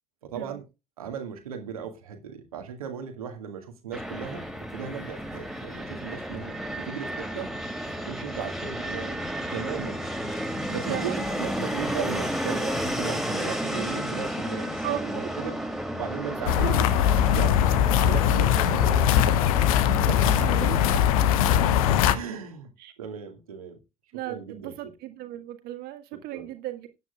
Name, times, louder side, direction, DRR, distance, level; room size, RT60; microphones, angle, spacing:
voice 1, 0.2-0.6 1.0-7.6 8.0-9.2 9.5-10.0 10.7-15.6 15.9-20.4 20.9-21.0 22.1-23.8 24.3-24.9 26.1-26.5, right 7 dB, 80° right, 2.0 m, -37 dB
Fixed-wing aircraft airplane, 3.9-21.9, equal, ahead, 2.6 m, -33 dB
voice 2, 10.8-11.5 14.8-15.3 16.5-16.8 20.3-20.8 22.8-22.9 24.1-26.9, right 13 dB, 60° right, 1.9 m, -35 dB
sound 1, 16.5-22.2, left 10 dB, 70° left, 0.9 m, -21 dB
17.0 x 9.4 x 2.4 m
figure-of-eight pair, 50°, 18 cm